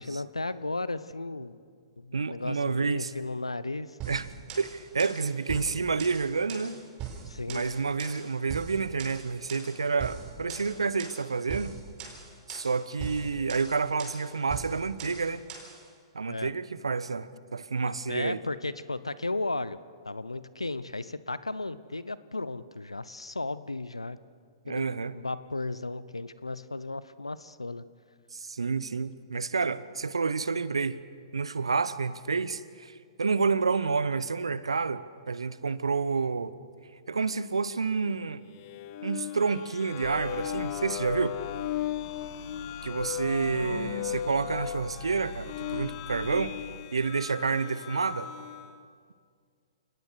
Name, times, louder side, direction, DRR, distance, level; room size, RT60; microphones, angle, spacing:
voice 1, 0.0-1.6 2.0-4.0 7.3-7.6 16.3-16.5 18.1-19.8 20.0-24.2 24.7-24.8 25.1-27.8 43.2-43.9, left 2 dB, 90° left, 16 dB, 0.8 m, -35 dB
voice 2, 2.1-3.1 4.1-6.8 7.5-11.7 12.5-15.4 16.1-18.4 24.6-25.1 28.3-31.0 31.3-36.5 37.1-38.4 39.0-41.3 42.8-46.5 46.9-48.3, right 4 dB, 80° right, 17 dB, 0.9 m, -29 dB
sound 1, 4.0-15.8, right 7 dB, 30° right, 4.5 m, -41 dB
sound 2, 38.5-48.8, left 11 dB, 45° left, 1.1 m, -37 dB
sound 3, 40.0-46.5, left 4 dB, 75° left, 5.4 m, -45 dB
30.0 x 18.5 x 6.4 m, 2.1 s
figure-of-eight pair, 115°, 3 cm